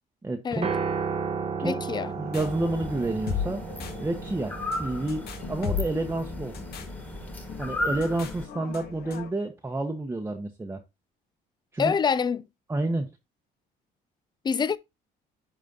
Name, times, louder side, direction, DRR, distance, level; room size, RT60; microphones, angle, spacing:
voice 1, 0.2-0.7 1.6-1.8 2.2-3.6 4.0-6.6 7.6-10.8 11.7-11.9 12.7-13.1, right 2 dB, 15° right, 1.0 m, -29 dB
Piano, 0.6-8.9, right 5 dB, 35° right, 1.3 m, -35 dB
voice 2, 1.6-2.1 11.8-12.5 14.4-14.8, left 6 dB, 25° left, 0.5 m, -26 dB
sound 1, 1.9-9.3, left 7 dB, 65° left, 2.0 m, -37 dB
sound 2, 2.4-8.5, left 1 dB, 10° left, 1.8 m, -36 dB
10.5 x 4.2 x 3.8 m
cardioid pair, 110°, 17 cm